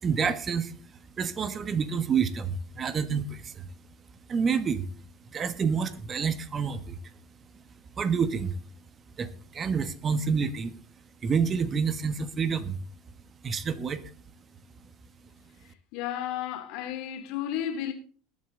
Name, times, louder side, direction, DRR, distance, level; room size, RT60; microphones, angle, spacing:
voice 1, 0.0-0.7 1.2-3.6 4.3-4.9 5.3-7.0 8.0-8.6 9.2-10.7 11.2-12.8 13.4-14.0, right 6 dB, 35° right, 1.3 m, -28 dB
voice 2, 15.9-17.9, left 10 dB, 60° left, 2.6 m, -32 dB
20.5 x 7.8 x 3.8 m
hypercardioid pair, 75°, 0 cm